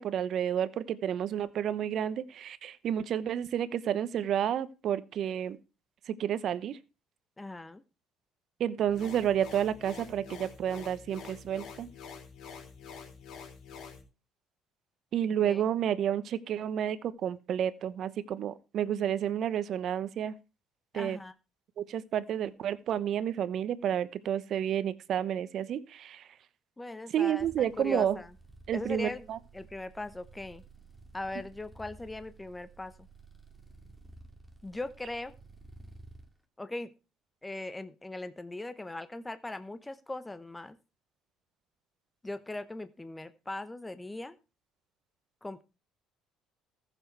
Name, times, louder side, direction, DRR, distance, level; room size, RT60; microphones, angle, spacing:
voice 1, 0.0-5.6 6.1-6.8 8.6-11.9 15.1-20.3 20.9-21.2 21.8-26.3 27.1-28.2 28.7-29.4, right 9 dB, 60° right, 1.0 m, -30 dB
voice 2, 7.4-7.8 15.4-15.6 20.9-21.3 26.8-27.5 27.8-28.3 28.7-29.3 29.5-30.6 31.1-33.1 34.6-35.4 36.6-36.9 37.4-40.8 42.2-44.3 45.4-45.6, left 2 dB, 15° left, 1.0 m, -39 dB
sound 1, 8.9-14.0, left 6 dB, 70° left, 4.5 m, -47 dB
sound 2, 27.4-36.3, right 3 dB, 10° right, 2.7 m, -53 dB
14.5 x 7.2 x 4.7 m
supercardioid pair, 75°, 0 cm